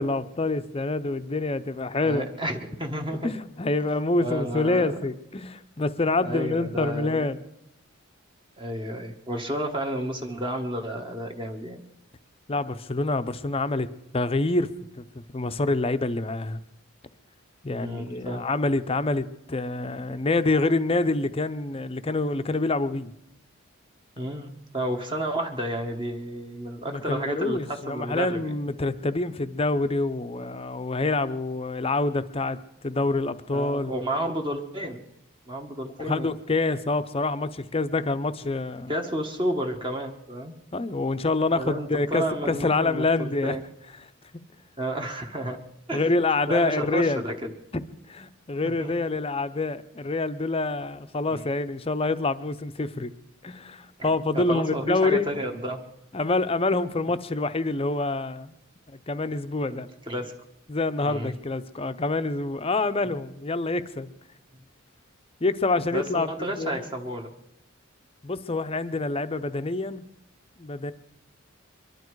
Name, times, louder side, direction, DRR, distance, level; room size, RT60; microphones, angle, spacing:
voice 1, 0.0-2.3 3.2-7.4 12.5-13.9 14.1-14.7 15.0-16.6 17.6-23.1 26.9-32.6 32.8-33.9 36.0-38.9 40.7-43.6 45.9-47.2 47.7-47.8 48.1-53.1 53.4-55.3 56.1-58.5 58.9-59.9 60.7-64.1 65.4-66.3 66.6-66.8 68.2-70.0 70.6-70.9, left 2 dB, 25° left, 11 dB, 0.6 m, -26 dB
voice 2, 2.0-3.4 4.2-4.9 6.2-7.3 8.6-11.8 17.8-18.4 24.2-28.5 33.5-35.0 35.4-36.3 38.9-40.5 41.6-43.6 44.8-45.6 45.9-46.0 46.5-47.5 48.6-48.9 51.3-51.4 54.0-54.1 54.3-55.8 59.7-60.3 61.0-61.3 65.9-67.3, right 1 dB, 20° right, 2 dB, 1.2 m, -31 dB
23.5 x 12.0 x 4.7 m, 0.81 s
head